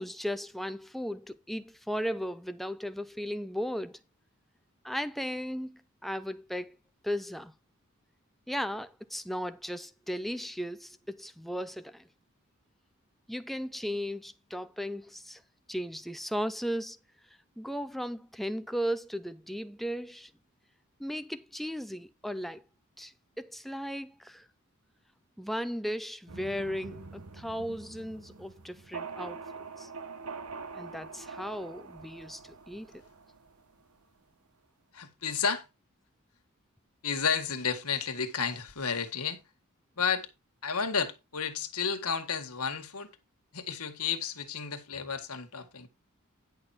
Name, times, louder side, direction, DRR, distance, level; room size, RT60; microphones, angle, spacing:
voice 1, 0.0-4.0 4.8-6.8 7.0-7.5 8.5-12.1 13.3-15.4 15.7-17.0 17.6-20.3 21.0-22.6 23.0-24.4 25.4-29.9 30.7-32.9, equal, ahead, 0.6 m, -36 dB
sound 1, 26.3-34.0, right 4 dB, 90° right, 1.1 m, -44 dB
voice 2, 34.9-35.7 37.0-39.4 40.0-40.3 40.6-43.1 43.5-45.9, left 6 dB, 90° left, 1.8 m, -32 dB
10.5 x 6.1 x 4.3 m
head